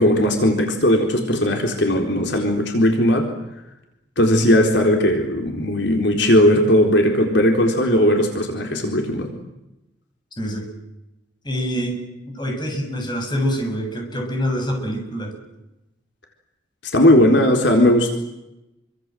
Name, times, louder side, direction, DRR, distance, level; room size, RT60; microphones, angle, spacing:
voice 1, 0.0-3.3 4.2-9.3 16.8-18.1, left 1 dB, 65° left, 3 dB, 4.1 m, -17 dB
voice 2, 10.4-10.7 11.4-15.4, equal, 25° left, 3 dB, 7.3 m, -26 dB
28.0 x 25.5 x 7.8 m, 0.93 s
head